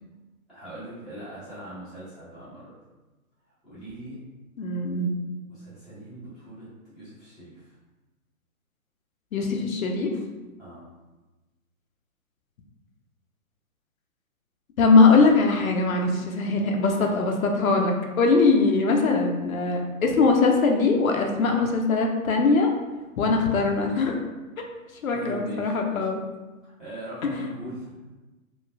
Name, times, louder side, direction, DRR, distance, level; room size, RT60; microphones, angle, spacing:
voice 1, 0.5-2.8 3.6-4.2 5.5-6.7 6.9-7.7 10.6-10.9 16.8-17.4 25.1-26.0 26.8-28.0, right 1 dB, ahead, -17 dB, 0.6 m, -40 dB
voice 2, 4.6-5.1 9.3-10.1 14.8-22.7 23.2-24.2 25.0-26.2, left 3 dB, 75° left, 2 dB, 0.6 m, -21 dB
3.1 x 2.2 x 2.2 m, 1.2 s
hypercardioid pair, 140°, 42 cm